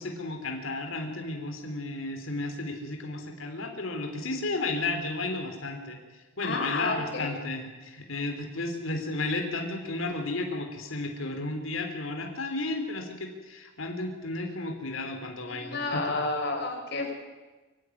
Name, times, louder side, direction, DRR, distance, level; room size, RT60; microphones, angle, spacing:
voice 1, 0.0-16.3, left 2 dB, 75° left, 4 dB, 3.4 m, -33 dB
voice 2, 6.4-7.3 15.6-17.1, left 3 dB, 50° left, 3 dB, 5.1 m, -30 dB
24.0 x 15.5 x 9.8 m, 1.2 s
head